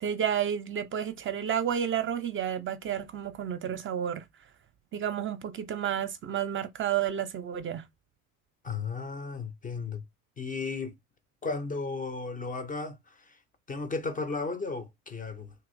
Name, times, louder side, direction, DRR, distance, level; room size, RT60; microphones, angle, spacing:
voice 1, 0.0-4.2 4.9-7.8, right 9 dB, 30° right, 0.6 m, -31 dB
voice 2, 8.6-10.0 10.4-10.9 11.4-13.4 13.7-15.5, left 4 dB, 20° left, 0.5 m, -34 dB
2.9 x 2.8 x 2.5 m
hypercardioid pair, 75°, 42 cm